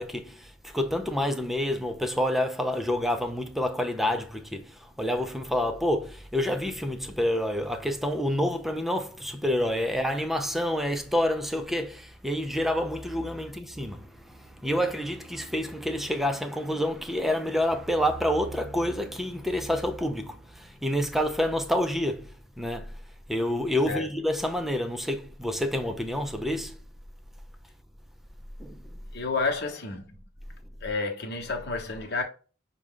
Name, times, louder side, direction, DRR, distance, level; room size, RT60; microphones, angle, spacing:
voice 1, 0.0-22.9 23.3-26.8 28.6-28.8, left 1 dB, ahead, 0.4 m, -28 dB
voice 2, 29.1-30.2 30.8-32.2, left 3 dB, 55° left, 1.0 m, -30 dB
6.1 x 2.2 x 3.6 m
head